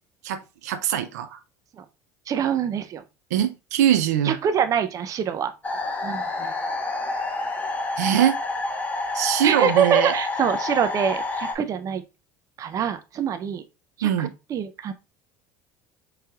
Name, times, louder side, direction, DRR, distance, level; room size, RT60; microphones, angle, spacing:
voice 1, 0.2-1.4 3.3-4.4 8.0-8.4 9.1-10.2 14.0-14.3, right 10 dB, 90° right, 0.4 m, -22 dB
voice 2, 2.3-3.0 4.2-5.5 6.0-6.5 9.4-12.0 12.6-13.6 14.0-14.9, right 8 dB, 40° right, 0.5 m, -25 dB
sound 1, 5.6-11.5, left 2 dB, 15° left, 1.0 m, -28 dB
4.5 x 3.2 x 2.3 m
supercardioid pair, 90°, 9 cm